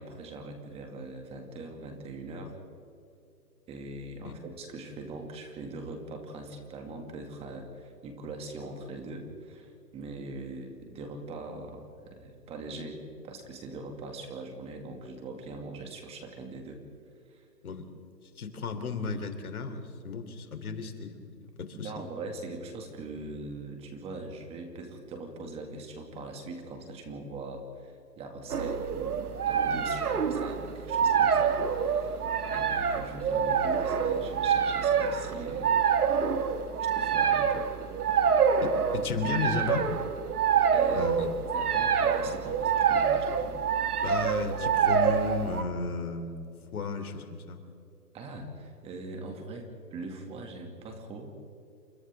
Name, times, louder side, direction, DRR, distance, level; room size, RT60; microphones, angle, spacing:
voice 1, 0.0-2.6 3.7-16.8 17.3-17.5 21.7-35.8 36.0-36.3 36.8-37.7 38.0-38.2 40.7-41.1 41.4-43.6 48.1-51.3, right 2 dB, 10° right, 4 dB, 2.3 m, -41 dB
voice 2, 18.4-21.9 38.6-39.9 40.9-41.3 44.0-46.4 46.7-47.6, left 4 dB, 60° left, 7 dB, 3.6 m, -34 dB
sound 1, 28.5-45.6, right 7 dB, 60° right, 2.1 m, -26 dB
30.0 x 27.5 x 3.7 m, 2.7 s
hypercardioid pair, 150°, 50 cm